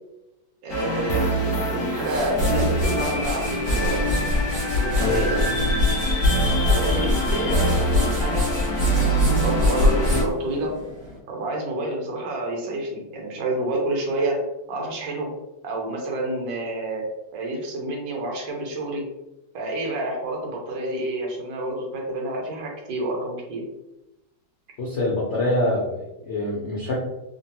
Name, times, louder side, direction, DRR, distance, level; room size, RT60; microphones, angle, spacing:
voice 1, 0.6-4.0 4.7-5.4 6.4-8.5 9.0-10.7 11.3-14.4 14.7-15.3 15.6-17.1 17.3-19.1 19.5-23.6, right 1 dB, 75° right, 0 dB, 1.5 m, -28 dB
sound 1, 0.7-10.2, right 1 dB, 60° left, 0.8 m, -25 dB
sound 2, 1.8-11.2, left 2 dB, 50° right, 1.5 m, -25 dB
voice 2, 24.8-27.0, left 2 dB, 85° left, -5 dB, 0.6 m, -25 dB
3.6 x 2.2 x 2.7 m, 0.95 s
omnidirectional pair, 2.1 m